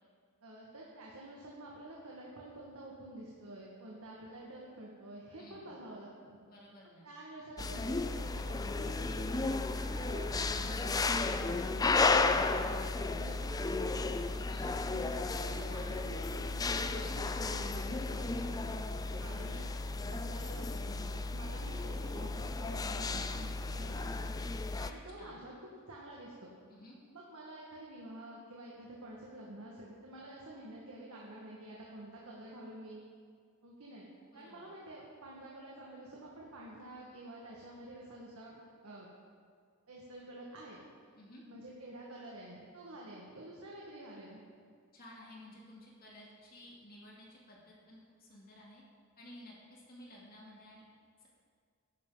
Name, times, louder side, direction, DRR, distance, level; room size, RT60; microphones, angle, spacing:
voice 1, 0.4-6.4 7.0-13.6 14.2-14.4 14.8-18.7 19.2-19.7 20.0-24.3 24.8-26.5 27.1-33.0 33.6-34.1 34.3-38.6 38.8-39.1 39.9-40.8 41.5-44.5, right 1 dB, 85° right, -4 dB, 1.8 m, -49 dB
voice 2, 5.4-5.7 6.5-7.1 14.5-14.9 19.1-19.6 25.2-25.4 26.7-27.0 34.3-34.7 41.2-41.4 44.9-48.8 49.2-50.9 51.2-51.3, left 1 dB, 45° left, -4 dB, 2.7 m, -54 dB
sound 1, 7.6-24.9, left 3 dB, 15° left, 0.4 m, -34 dB
14.5 x 11.0 x 4.0 m, 2.1 s
head